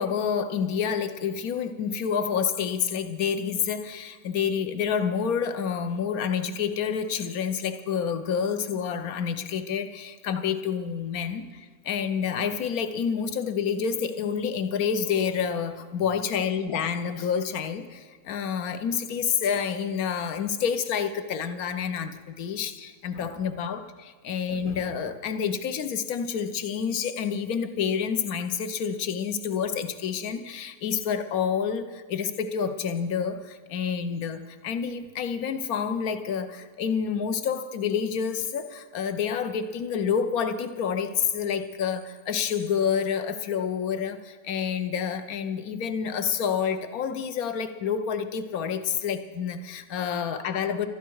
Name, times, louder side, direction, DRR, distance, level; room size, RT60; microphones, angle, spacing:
voice 1, 0.0-50.9, left 7 dB, 60° left, 10 dB, 1.3 m, -28 dB
19.0 x 13.0 x 4.7 m, 1.4 s
omnidirectional pair, 1.9 m